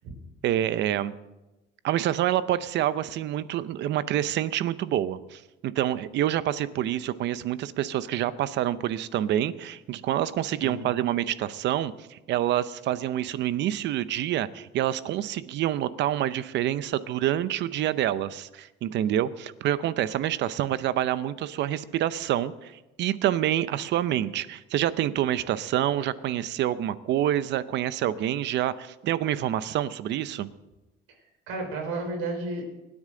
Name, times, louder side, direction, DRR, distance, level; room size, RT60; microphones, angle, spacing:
voice 1, 0.4-1.1 1.8-30.5, right 12 dB, 55° right, 15 dB, 0.6 m, -27 dB
voice 2, 10.6-10.9 31.5-32.6, right 2 dB, 85° right, 2 dB, 4.6 m, -32 dB
25.0 x 9.8 x 3.8 m, 1.0 s
cardioid pair, 155°, 21 cm